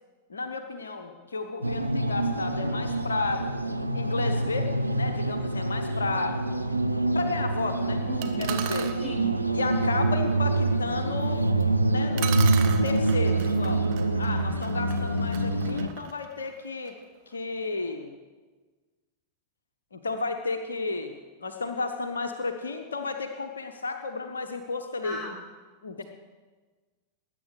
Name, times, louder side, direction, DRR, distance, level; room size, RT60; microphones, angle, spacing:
voice 1, 0.3-3.5 3.9-6.4 7.1-8.0 8.4-8.9 9.5-11.4 11.8-12.4 12.8-13.9 14.2-17.0 17.3-18.2 19.9-25.2 25.8-26.0, left 3 dB, 70° left, 6 dB, 1.0 m, -33 dB
sound 1, 1.6-15.9, right 2 dB, 85° right, 0.7 m, -26 dB
voice 2, 8.0-8.4 9.0-9.3 25.0-25.4, left 1 dB, 5° left, -3 dB, 6.0 m, -36 dB
sound 2, 8.2-9.0 11.6-11.7 12.2-17.0, right 10 dB, 45° right, 1.2 m, -38 dB
20.0 x 9.2 x 6.4 m, 1.4 s
figure-of-eight pair, 90°, 0 cm